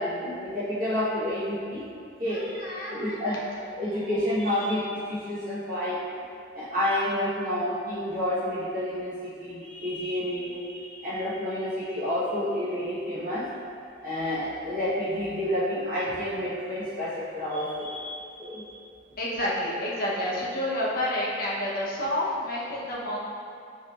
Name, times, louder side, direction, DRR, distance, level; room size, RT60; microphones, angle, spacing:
voice 1, 0.0-1.8 2.2-2.6 2.9-3.4 3.8-6.0 6.5-13.5 14.0-18.8, left 1 dB, 45° right, -12 dB, 1.2 m, -29 dB
voice 2, 2.3-3.4 19.2-23.2, left 1 dB, 50° left, -6 dB, 0.8 m, -30 dB
5.5 x 3.1 x 2.4 m, 2.5 s
head